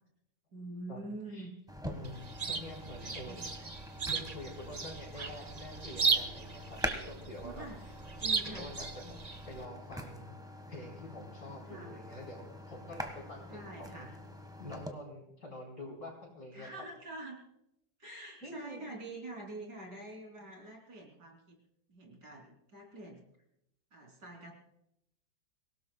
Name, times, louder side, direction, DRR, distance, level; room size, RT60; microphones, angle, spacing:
voice 1, 0.5-1.5 3.2-3.4 5.2-5.3 7.4-7.8 8.2-8.7 11.7-11.9 13.4-14.2 16.5-17.4 18.0-21.6 21.9-23.2 23.9-24.5, right 2 dB, 65° right, 1 dB, 3.9 m, -46 dB
sound 1, 1.7-14.9, equal, 5° right, 1.2 m, -45 dB
voice 2, 1.8-3.4 4.1-6.8 7.1-7.9 8.4-9.2 9.5-10.3 10.7-14.1 14.6-16.7 18.4-18.9, left 1 dB, 55° left, -1 dB, 4.7 m, -46 dB
Chirp tweet, 2.0-9.6, right 5 dB, 35° right, 0.6 m, -36 dB
26.0 x 17.0 x 2.3 m, 0.79 s
omnidirectional pair, 1.9 m